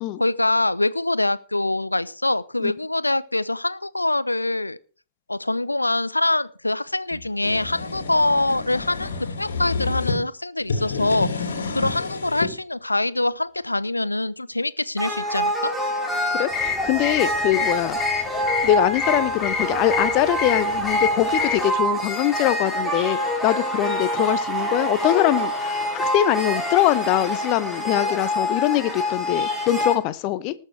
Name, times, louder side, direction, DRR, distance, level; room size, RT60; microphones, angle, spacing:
voice 1, 0.2-4.8 5.3-9.1 9.4-15.7, left 2 dB, 85° left, 0.6 m, -24 dB
sound 1, 7.1-10.2 10.6-12.5, left 4 dB, 65° left, 2.5 m, -29 dB
sound 2, 15.0-29.9, equal, 5° left, 2.5 m, -26 dB
voice 2, 16.3-18.0 18.6-30.5, left 14 dB, 35° left, 0.9 m, -23 dB
sound 3, 16.5-21.6, left 7 dB, 20° left, 1.5 m, -29 dB
19.0 x 6.7 x 4.7 m
figure-of-eight pair, 110°, 0 cm